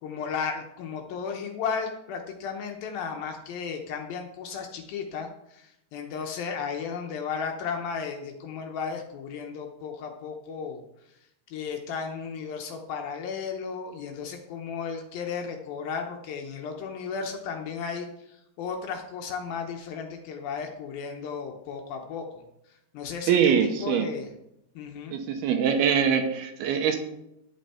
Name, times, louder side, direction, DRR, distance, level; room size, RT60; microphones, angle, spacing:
voice 1, 0.0-10.8 11.5-22.3 22.9-24.3 24.8-25.2, left 6 dB, 75° left, 3 dB, 2.4 m, -34 dB
voice 2, 23.3-24.1 25.1-27.0, right 7 dB, 75° right, 6 dB, 2.7 m, -23 dB
11.0 x 9.0 x 4.3 m, 0.83 s
omnidirectional pair, 4.8 m